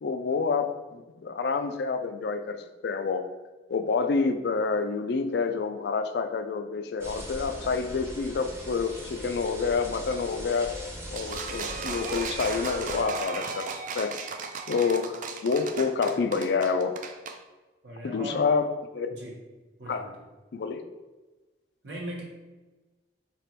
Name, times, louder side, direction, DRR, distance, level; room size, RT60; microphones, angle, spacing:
voice 1, 0.0-3.3 3.7-10.8 11.1-14.1 14.7-17.0 18.0-18.7 18.9-19.1 19.9-20.1 20.5-20.8, left 5 dB, 65° left, 9 dB, 0.4 m, -28 dB
sound 1, 7.0-13.0, equal, 15° right, 0.7 m, -39 dB
sound 2, 11.2-17.4, right 5 dB, 45° right, 0.3 m, -36 dB
voice 2, 17.8-18.4 19.1-19.4 19.8-20.2 21.8-22.2, equal, 80° right, -3 dB, 1.1 m, -39 dB
3.3 x 2.9 x 4.4 m, 1.2 s
head